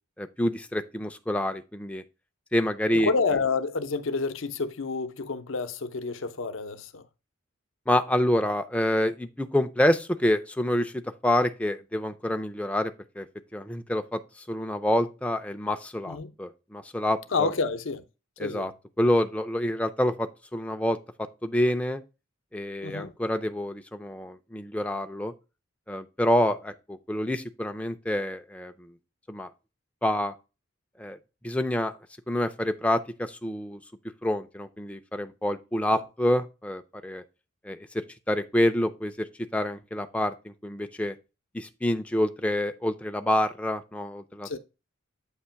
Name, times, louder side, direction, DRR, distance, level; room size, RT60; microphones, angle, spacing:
voice 1, 0.2-2.0 2.5-3.1 7.9-13.3 13.5-14.2 14.5-17.5 18.4-18.7 19.0-21.0 21.4-22.0 22.5-25.3 25.9-28.9 29.3-29.5 30.0-30.3 31.0-31.2 31.4-31.9 32.3-33.8 34.2-37.2 37.6-37.9 38.3-39.3 39.5-40.3 40.6-41.1 41.5-44.6, left 1 dB, 5° left, 0.4 m, -27 dB
voice 2, 2.9-7.0 16.1-16.3 17.3-18.0 18.4-18.7 22.8-23.1 35.9-36.0 44.4-44.6, left 4 dB, 70° left, 0.7 m, -29 dB
8.2 x 2.9 x 5.6 m
head